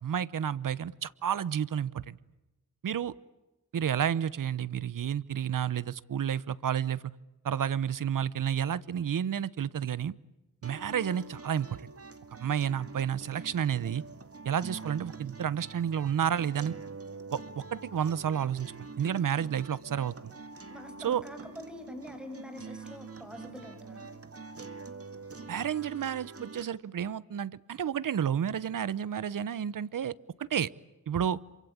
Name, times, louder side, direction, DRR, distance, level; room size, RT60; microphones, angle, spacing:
voice 1, 0.0-2.2 2.8-3.1 3.7-7.0 7.4-10.1 10.6-11.8 12.4-14.0 14.4-16.7 17.3-20.3 21.0-21.2 25.5-30.1 30.5-30.7 31.1-31.4, right 9 dB, 80° right, 19 dB, 0.9 m, -31 dB
sound 1, 10.6-26.6, right 4 dB, 45° right, 2.3 m, -46 dB
voice 2, 20.7-24.1, left 1 dB, 5° right, 6 dB, 6.7 m, -45 dB
27.5 x 24.5 x 8.6 m, 1.0 s
wide cardioid pair, 90°, 32 cm